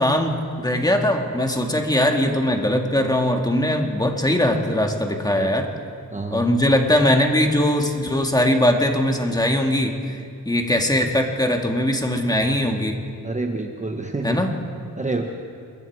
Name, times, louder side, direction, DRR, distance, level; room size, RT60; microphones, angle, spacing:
voice 1, 0.0-5.7 6.3-13.0 14.2-14.5, left 1 dB, 10° left, 2 dB, 2.1 m, -20 dB
voice 2, 6.1-6.5 13.2-14.4 14.9-15.4, right 2 dB, 20° right, 3 dB, 1.2 m, -28 dB
27.5 x 21.5 x 4.8 m, 2.5 s
wide cardioid pair, 135°, 34 cm